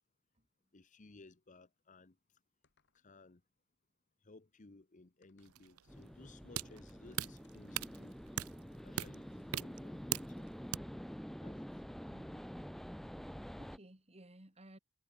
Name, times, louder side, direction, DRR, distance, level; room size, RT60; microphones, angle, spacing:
voice 1, 0.7-2.2 2.9-3.4 4.2-8.4 8.8-10.5 11.4-11.7, left 3 dB, 35° left, 0.9 m, -59 dB
sound 1, 2.6-3.3 5.2-5.7 7.4-7.9, left 6 dB, 55° left, 4.4 m, -79 dB
sound 2, 5.4-10.8, right 11 dB, 90° right, 0.6 m, -42 dB
sound 3, 5.9-13.8, equal, ahead, 0.6 m, -48 dB
voice 2, 12.1-12.5 13.2-13.3 13.6-14.8, right 1 dB, 30° right, 2.8 m, -58 dB
head